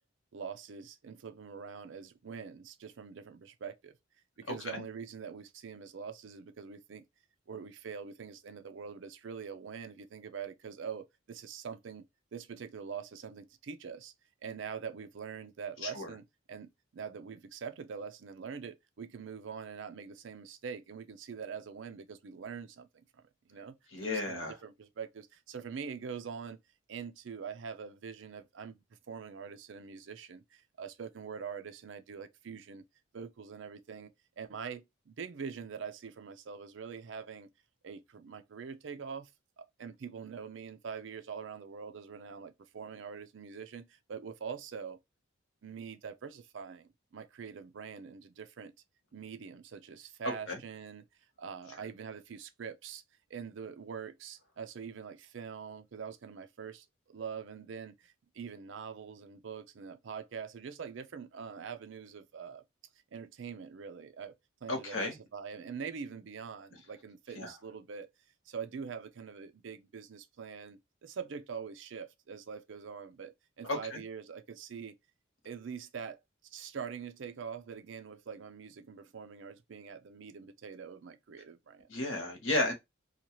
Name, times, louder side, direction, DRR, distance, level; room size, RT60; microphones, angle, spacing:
voice 1, 0.3-3.9 4.4-7.0 7.5-12.1 12.3-14.1 14.4-23.8 24.0-26.6 26.9-28.8 29.1-32.8 33.1-34.1 34.4-37.5 37.8-39.3 39.6-45.0 45.6-48.7 49.1-51.1 51.4-53.0 53.3-62.6 63.1-64.3 64.6-68.1 68.5-75.0 75.4-76.2 76.5-81.9, right 6 dB, 65° right, 0.4 m, -44 dB
voice 2, 23.9-24.6 50.5-50.6 64.7-65.1 67.3-67.5 73.6-74.0 81.9-82.7, left 2 dB, 90° left, 1.1 m, -33 dB
2.8 x 2.3 x 2.9 m
head